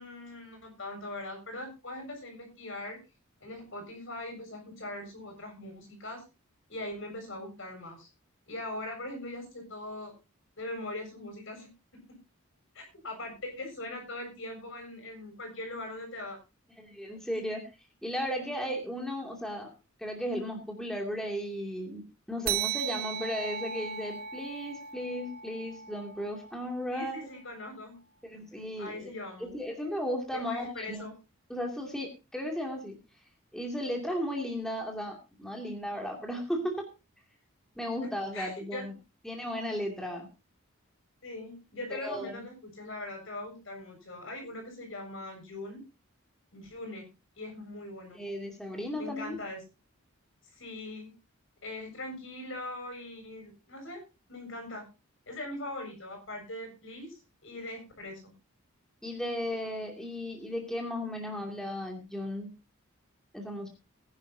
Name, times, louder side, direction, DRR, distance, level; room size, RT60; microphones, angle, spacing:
voice 1, 0.0-3.0 3.4-6.2 6.7-8.1 8.5-10.1 10.6-11.7 12.1-12.2 12.7-16.4 26.9-28.0 28.8-29.5 30.3-31.1 38.3-38.8 41.2-45.8 46.5-47.1 47.4-48.2 49.0-49.6 50.5-51.1 51.6-54.0 54.3-54.8 55.3-58.3, left 1 dB, 60° left, 3 dB, 7.2 m, -41 dB
voice 2, 16.8-17.6 18.0-19.7 20.0-27.2 28.2-29.1 29.4-31.0 31.5-33.0 33.5-36.9 37.8-38.9 39.2-40.3 41.9-42.4 48.1-49.4 59.0-62.5 63.3-63.7, equal, 5° left, 0 dB, 2.6 m, -35 dB
sound 1, 22.5-27.4, right 9 dB, 45° right, 0.7 m, -37 dB
20.5 x 10.5 x 2.8 m, 0.29 s
head